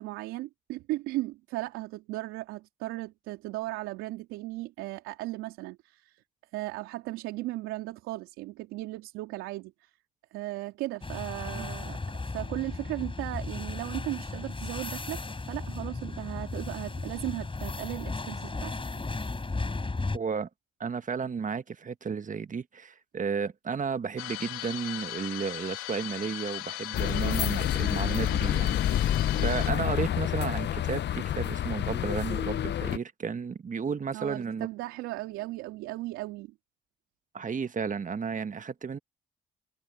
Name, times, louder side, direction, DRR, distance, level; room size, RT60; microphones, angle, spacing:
voice 1, 0.0-6.2 6.5-9.9 10.3-15.2 15.5-18.7 29.4-29.5 34.1-36.5, right 18 dB, 85° right, 3.1 m, -36 dB
sound 1, 11.0-20.2, left 3 dB, 25° left, 6.9 m, -35 dB
voice 2, 20.1-20.5 20.8-34.7 37.3-39.0, right 6 dB, 40° right, 1.4 m, -33 dB
sound 2, 24.2-29.7, left 20 dB, 90° left, 3.0 m, -38 dB
sound 3, 26.9-33.0, left 11 dB, 60° left, 0.8 m, -28 dB
supercardioid pair, 55°, 21 cm